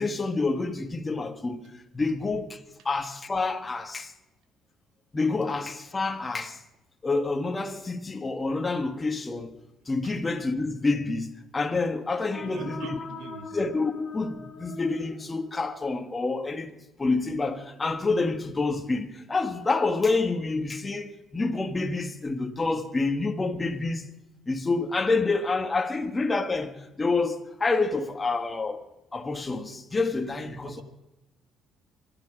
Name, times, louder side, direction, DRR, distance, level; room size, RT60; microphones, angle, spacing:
voice 1, 0.0-1.6 1.9-4.1 5.1-6.6 7.0-9.5 9.9-13.0 13.5-16.7 17.0-24.0 24.5-28.8 29.1-30.8, left 3 dB, 20° left, 1.5 m, -28 dB
sound 1, 12.0-15.8, left 3 dB, 40° left, 2.6 m, -43 dB
voice 2, 12.4-13.5 30.6-30.8, right 6 dB, 85° right, 2.1 m, -42 dB
24.0 x 11.0 x 5.1 m
cardioid pair, 110°, 0 cm